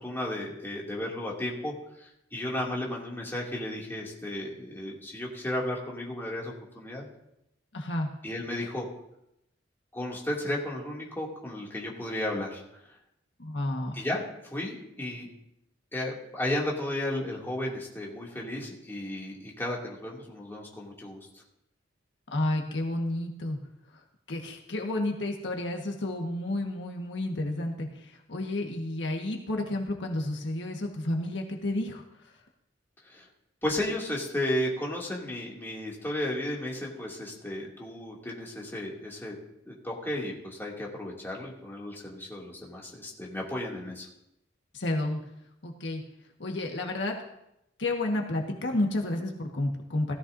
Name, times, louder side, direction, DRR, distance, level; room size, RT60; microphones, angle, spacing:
voice 1, 0.0-7.0 8.2-8.9 9.9-12.9 13.9-15.3 15.9-21.2 33.0-33.3 33.6-39.3 39.7-44.1, left 1 dB, 10° left, -4 dB, 2.6 m, -34 dB
voice 2, 7.7-8.1 13.4-13.9 22.3-23.6 24.3-32.0 44.7-45.2 45.6-46.0 46.4-47.2 47.8-50.1, left 1 dB, 75° left, 2 dB, 1.6 m, -31 dB
17.0 x 14.0 x 2.7 m, 0.83 s
head